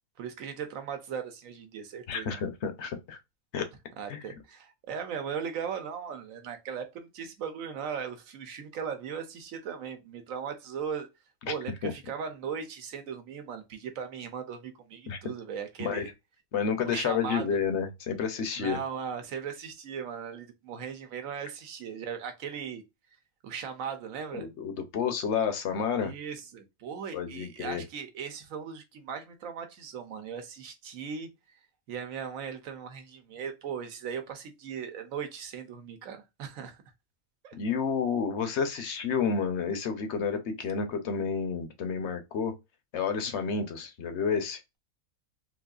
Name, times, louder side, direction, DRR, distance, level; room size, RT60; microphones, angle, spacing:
voice 1, 0.2-2.4 4.0-11.1 11.5-16.1 16.8-17.5 18.6-22.8 23.4-24.5 26.0-31.3 31.9-36.8 37.4-37.6 38.7-38.9, right 7 dB, 70° right, 1.1 m, -38 dB
voice 2, 2.1-3.2 3.5-3.7 4.1-4.3 11.5-11.6 11.8-11.9 15.1-15.2 15.8-16.1 16.5-18.8 24.3-26.1 27.1-27.8 37.5-42.5 42.9-44.6, left 6 dB, 60° left, 0.9 m, -30 dB
3.9 x 2.6 x 2.4 m
omnidirectional pair, 1.5 m